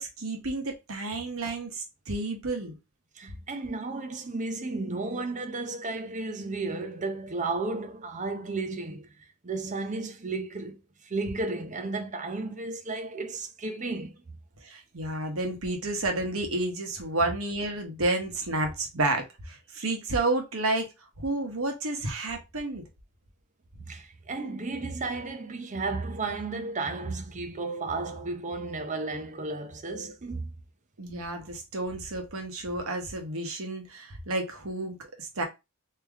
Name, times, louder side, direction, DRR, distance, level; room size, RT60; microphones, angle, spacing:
voice 1, 0.0-2.7 14.6-20.9 21.2-22.8 31.0-35.4, right 2 dB, 70° right, 1.1 m, -31 dB
voice 2, 3.1-9.1 9.4-14.2 23.8-30.5, right 3 dB, 35° right, 0.6 m, -33 dB
3.3 x 2.9 x 3.5 m
head